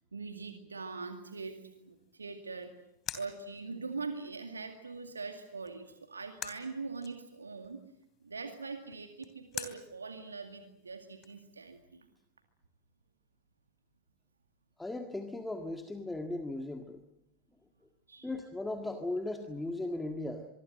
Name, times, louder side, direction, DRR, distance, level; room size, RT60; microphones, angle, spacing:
voice 1, 0.1-2.7 3.1-7.8 8.2-12.1 18.1-18.3, right 4 dB, 75° right, 6 dB, 2.2 m, -42 dB
sound 1, 1.7-11.8, left 9 dB, 30° left, 3.1 m, -49 dB
voice 2, 14.8-17.0 18.2-20.5, left 2 dB, 5° left, 5 dB, 1.8 m, -37 dB
25.0 x 23.0 x 7.7 m, 0.81 s
figure-of-eight pair, 90°, 0 cm